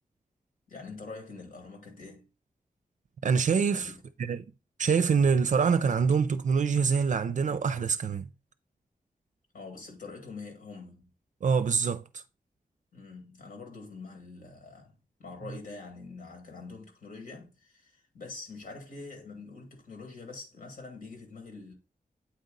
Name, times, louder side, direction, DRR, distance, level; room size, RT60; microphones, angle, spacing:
voice 1, 0.7-2.3 3.7-3.9 9.5-11.0 12.9-21.7, left 3 dB, 75° left, 2.1 m, -45 dB
voice 2, 3.2-3.9 4.2-4.4 4.8-8.3 11.4-12.2, right 6 dB, 60° right, 0.4 m, -25 dB
8.4 x 4.1 x 3.8 m
wide cardioid pair, 130°, 14 cm